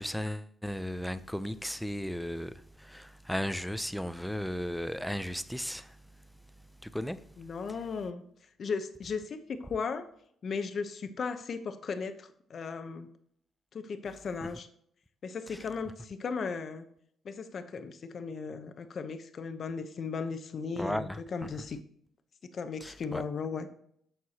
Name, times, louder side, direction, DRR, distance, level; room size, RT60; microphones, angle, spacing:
voice 1, 0.0-6.0 6.8-7.2 20.8-21.2 22.8-23.2, equal, ahead, 0.5 m, -35 dB
voice 2, 7.4-8.2 8.6-10.0 10.4-13.1 13.7-14.7 15.2-16.8 17.2-21.8 22.5-23.7, left 5 dB, 50° left, 0.8 m, -36 dB
13.5 x 4.6 x 2.9 m
cardioid pair, 90°, 0 cm